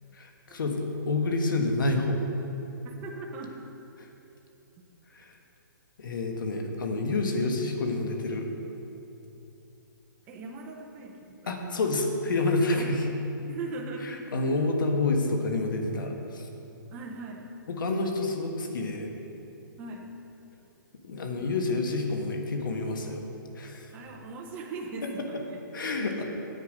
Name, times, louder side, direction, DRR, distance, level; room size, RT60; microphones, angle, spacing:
voice 1, 0.1-2.2 5.1-5.3 6.0-8.5 11.5-13.0 14.3-16.5 17.8-19.1 21.0-23.2 23.5-23.9 25.0-25.3 25.7-26.2, left 2 dB, 65° left, 3 dB, 1.5 m, -28 dB
voice 2, 2.8-3.6 10.3-11.6 12.7-13.0 13.4-14.3 16.9-17.5 19.8-20.1 23.9-25.6 26.0-26.2, right 3 dB, 15° right, 0 dB, 0.7 m, -40 dB
9.5 x 8.3 x 5.1 m, 2.9 s
hypercardioid pair, 165°, 11 cm